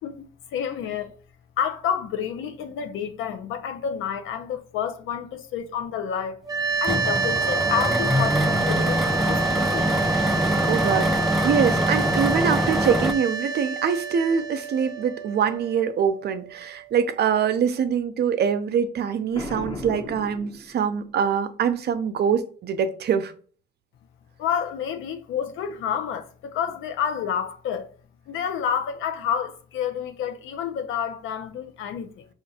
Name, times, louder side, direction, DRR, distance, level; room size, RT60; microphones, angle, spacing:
voice 1, 0.0-1.2 1.6-6.4 6.8-9.9 24.4-27.9 28.3-32.3, left 8 dB, 85° left, 0.6 m, -29 dB
sound 1, 6.4-17.5, right 5 dB, 15° right, 0.7 m, -28 dB
sound 2, 6.8-13.1, equal, ahead, 0.3 m, -24 dB
voice 2, 10.1-10.4 10.7-23.3, right 7 dB, 55° right, 0.5 m, -24 dB
Boom, 19.3-21.2, left 2 dB, 25° left, 0.9 m, -36 dB
4.9 x 2.4 x 2.7 m
cardioid pair, 90°, 20 cm